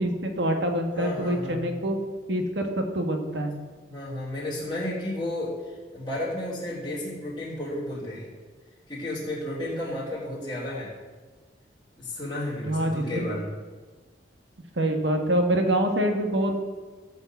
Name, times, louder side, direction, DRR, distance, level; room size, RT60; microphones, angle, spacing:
voice 1, 0.0-2.0 2.3-3.5 12.7-13.4 14.8-16.6, right 1 dB, 80° right, 4 dB, 1.8 m, -25 dB
voice 2, 0.9-1.7 3.9-8.3 8.9-10.9 12.0-13.5, left 1 dB, 20° left, -11 dB, 3.2 m, -32 dB
15.0 x 5.4 x 8.3 m, 1.4 s
head